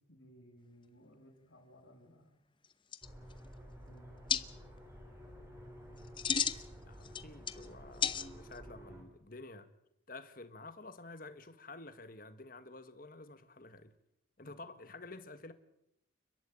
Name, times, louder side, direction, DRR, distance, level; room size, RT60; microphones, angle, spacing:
voice 1, 0.1-2.4 3.7-4.5 14.4-14.9, equal, 85° left, 6.3 m, -60 dB
sound 1, 2.6-2.7 2.9-3.5 4.3-4.4 6.0-6.6 7.0-7.7 8.0-8.6, left 7 dB, 25° left, 0.8 m, -33 dB
sound 2, 3.0-9.0, equal, 15° right, 4.1 m, -52 dB
voice 2, 6.2-9.7 10.1-14.0 14.4-15.5, left 2 dB, 45° left, 1.7 m, -51 dB
30.0 x 13.0 x 8.9 m
head